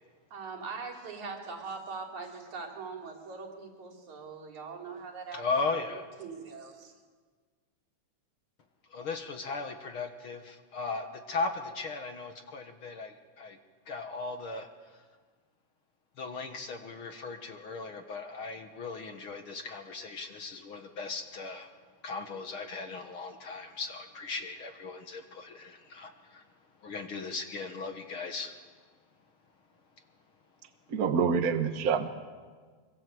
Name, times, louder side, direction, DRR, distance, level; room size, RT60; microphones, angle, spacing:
voice 1, 0.3-5.4 5.7-6.9, right 4 dB, 75° right, 2 dB, 4.5 m, -42 dB
voice 2, 5.3-6.1 8.9-13.6 13.9-14.7 16.2-21.7 22.0-26.4 26.8-28.5, left 4 dB, 50° left, 6 dB, 2.0 m, -37 dB
voice 3, 30.9-32.1, right 6 dB, 55° right, 7 dB, 1.0 m, -26 dB
25.5 x 24.0 x 7.8 m, 1.5 s
omnidirectional pair, 3.4 m